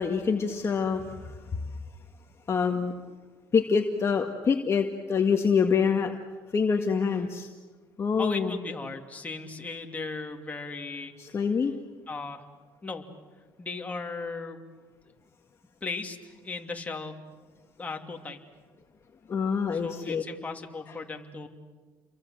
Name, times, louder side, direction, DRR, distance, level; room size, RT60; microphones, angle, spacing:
voice 1, 0.0-1.4 2.5-2.9 3.5-6.2 6.5-7.5 8.0-8.6 11.2-11.7 19.3-20.2, left 6 dB, 35° left, 3 dB, 1.8 m, -26 dB
voice 2, 8.2-11.1 12.1-12.4 12.8-13.1 13.6-14.6 15.8-17.2 17.8-18.4 19.7-21.5, left 3 dB, 20° left, 3 dB, 2.8 m, -37 dB
30.0 x 23.5 x 7.9 m, 1.4 s
cardioid pair, 110°, 8 cm